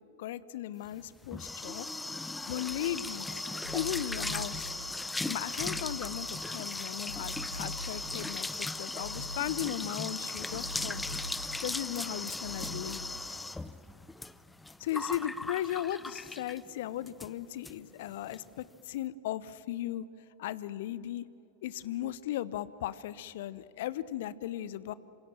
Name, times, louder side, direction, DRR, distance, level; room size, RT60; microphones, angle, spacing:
voice 1, 0.2-1.9 2.5-3.4 3.7-4.7 5.3-11.0 11.6-13.2 14.8-20.0 20.4-21.2 21.6-24.9, left 12 dB, 55° left, 18 dB, 0.9 m, -37 dB
sound 1, 0.9-16.7 17.1-17.3 17.6-17.7 18.0-18.4, left 2 dB, 5° left, 0.7 m, -38 dB
sound 2, 2.6-13.9, left 1 dB, 85° left, 2.2 m, -45 dB
27.5 x 26.5 x 7.5 m, 2.9 s
figure-of-eight pair, 90°, 0 cm